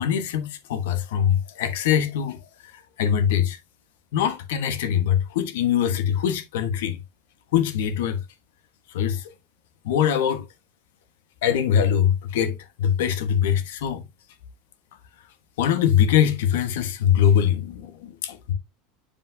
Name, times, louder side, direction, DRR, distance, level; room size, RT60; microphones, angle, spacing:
voice 1, 0.0-3.6 4.1-7.0 7.5-8.2 8.9-9.3 9.8-10.4 11.4-14.0 15.6-18.5, left 9 dB, 80° left, 1.2 m, -23 dB
7.7 x 5.1 x 2.7 m
supercardioid pair, 170°, 0 cm